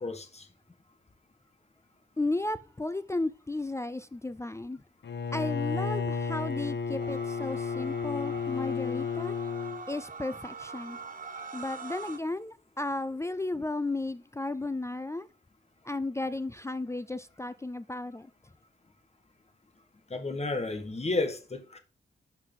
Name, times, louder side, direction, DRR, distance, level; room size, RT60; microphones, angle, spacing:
voice 1, 0.0-0.4 20.1-21.8, left 3 dB, 35° left, 1.4 m, -32 dB
voice 2, 2.2-4.8 5.3-9.4 9.9-11.0 11.5-15.3 15.8-18.3, left 2 dB, 15° left, 0.4 m, -34 dB
Bowed string instrument, 5.0-9.8, left 6 dB, 70° left, 1.1 m, -32 dB
sound 1, 7.0-12.2, right 4 dB, 45° right, 1.0 m, -43 dB
11.5 x 4.7 x 3.7 m
wide cardioid pair, 120°, 19 cm